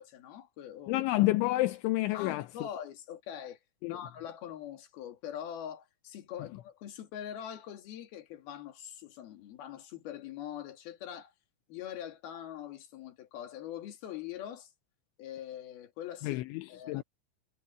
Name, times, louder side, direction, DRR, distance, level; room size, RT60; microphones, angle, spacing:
voice 1, 0.0-1.0 2.1-11.3 11.7-14.7 15.2-16.4 16.7-17.0, left 10 dB, 60° left, 4.0 m, -43 dB
voice 2, 0.9-2.5 3.8-4.0 16.2-17.0, left 18 dB, 80° left, 3.2 m, -29 dB
omnidirectional pair, 5.4 m